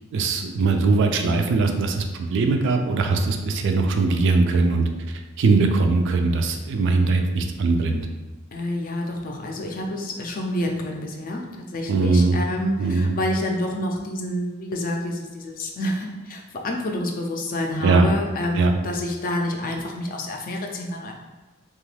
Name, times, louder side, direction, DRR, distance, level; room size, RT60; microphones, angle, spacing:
voice 1, 0.1-8.1 11.9-12.4 12.8-13.2 17.8-18.1 18.6-18.7, right 3 dB, 60° right, 5 dB, 0.3 m, -21 dB
voice 2, 8.5-21.1, left 1 dB, 40° left, 2 dB, 0.4 m, -28 dB
2.9 x 2.3 x 3.2 m, 1.2 s
head